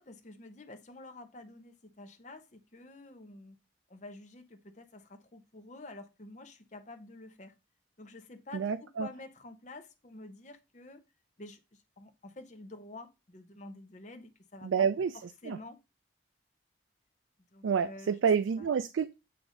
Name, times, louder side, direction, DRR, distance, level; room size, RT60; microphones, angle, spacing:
voice 1, 0.0-3.6 3.9-7.5 8.0-11.0 11.4-14.9 15.4-15.8 17.5-18.1 18.6-18.7, left 2 dB, 40° left, 0.8 m, -49 dB
voice 2, 8.5-9.1 14.6-15.1 15.4-15.6 17.6-19.2, right 6 dB, 80° right, 0.4 m, -28 dB
7.8 x 2.6 x 5.0 m
head